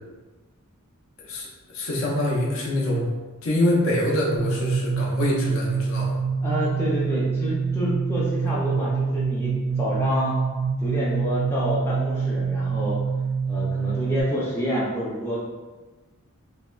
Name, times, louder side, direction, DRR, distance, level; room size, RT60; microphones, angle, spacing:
voice 1, 1.7-3.1 3.4-6.2 8.7-8.9, left 1 dB, 65° left, -4 dB, 0.6 m, -25 dB
sound 1, 4.4-14.2, right 5 dB, 50° right, 0.5 m, -26 dB
voice 2, 6.4-10.4 10.8-13.0 13.5-15.4, equal, 10° left, -7 dB, 0.4 m, -28 dB
3.4 x 2.1 x 2.3 m, 1.3 s
head